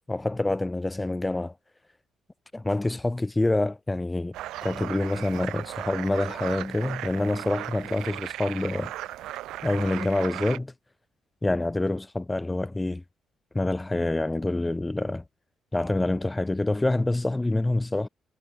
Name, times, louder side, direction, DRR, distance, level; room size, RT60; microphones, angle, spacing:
voice 1, 0.1-1.5 2.5-4.3 4.6-8.9 9.6-10.7 11.4-13.0 13.5-15.2 15.7-18.1, left 2 dB, 15° left, 6.6 m, -26 dB
sound 1, 4.3-10.6, right 15 dB, 90° right, 4.4 m, -37 dB
cardioid pair, 90°, 0 cm